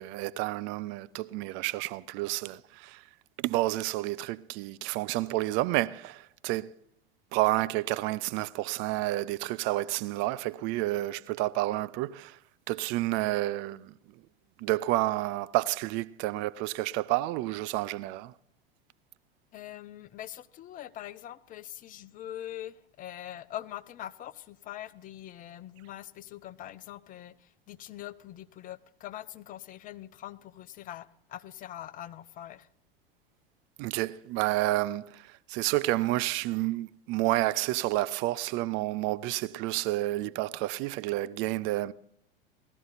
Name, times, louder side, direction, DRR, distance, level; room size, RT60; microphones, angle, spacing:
voice 1, 0.0-3.0 3.4-6.7 7.3-12.4 12.7-13.9 14.6-18.3 33.8-41.9, right 17 dB, 40° right, 0.5 m, -30 dB
voice 2, 19.5-32.7, left 12 dB, 30° left, 0.5 m, -43 dB
17.0 x 12.5 x 4.0 m
figure-of-eight pair, 85°, 29 cm